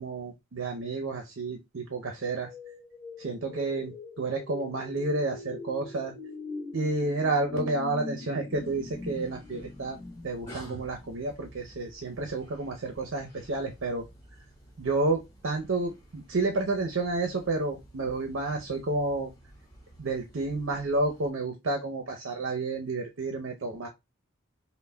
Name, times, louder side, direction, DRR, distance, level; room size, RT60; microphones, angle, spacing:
voice 1, 0.0-2.5 3.2-6.1 6.7-10.0 10.2-14.0 14.8-19.3 20.0-23.9, right 2 dB, 65° right, 3 dB, 0.6 m, -30 dB
sound 1, 2.2-11.1, left 2 dB, ahead, 0.8 m, -42 dB
sound 2, 8.5-21.3, right 1 dB, 15° left, 1.7 m, -51 dB
5.5 x 2.1 x 2.2 m, 0.22 s
head